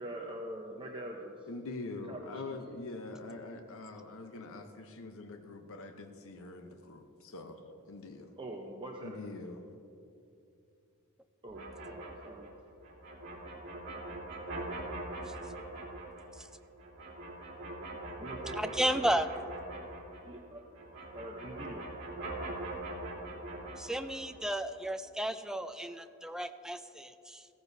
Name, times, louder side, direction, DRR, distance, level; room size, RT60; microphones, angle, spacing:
voice 1, 0.0-1.5 1.8-2.6 8.4-9.5 11.4-12.5 13.3-13.4 18.2-19.2 20.3-20.6 21.1-21.9, right 1 dB, 20° right, 0 dB, 0.8 m, -44 dB
voice 2, 1.5-7.6 7.9-8.3 9.0-9.6, left 3 dB, 65° left, 5 dB, 0.8 m, -44 dB
sound 1, 11.5-20.4 20.7-24.4, right 2 dB, 50° right, 2.8 m, -42 dB
voice 3, 18.6-19.3 23.8-27.5, equal, 5° right, 9 dB, 0.4 m, -33 dB
15.5 x 15.0 x 2.7 m, 2.6 s
head